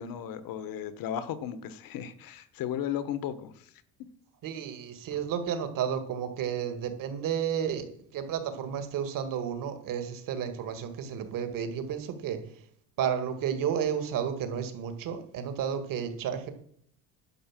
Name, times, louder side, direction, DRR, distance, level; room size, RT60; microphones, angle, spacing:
voice 1, 0.0-3.7, left 9 dB, 60° left, 14 dB, 1.2 m, -35 dB
voice 2, 4.4-7.8 8.1-12.4 13.0-16.5, right 8 dB, 55° right, 8 dB, 2.0 m, -32 dB
11.0 x 5.4 x 7.5 m, 0.64 s
cardioid pair, 135°, 38 cm